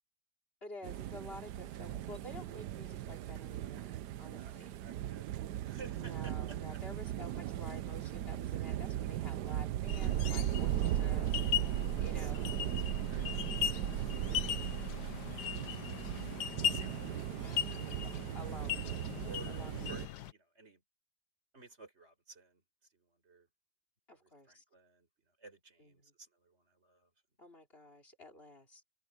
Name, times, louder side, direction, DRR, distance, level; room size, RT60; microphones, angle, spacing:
voice 1, 0.6-4.7 6.0-11.4 12.0-12.5 17.4-18.9 19.5-19.9 24.1-24.6 25.8-26.1 27.4-28.8, left 1 dB, 35° left, 4.3 m, -51 dB
sound 1, 0.8-20.1, right 12 dB, 90° right, 1.3 m, -37 dB
voice 2, 4.8-5.3 5.6-6.6 8.8-9.0 11.8-15.2 16.3-17.2 19.2-19.6 19.9-20.8 21.5-22.6 22.9-23.5 24.2-25.1 25.4-27.1, right 3 dB, 40° right, 5.1 m, -55 dB
sound 2, 9.9-20.3, left 10 dB, 80° left, 1.4 m, -39 dB
open air
omnidirectional pair, 1.7 m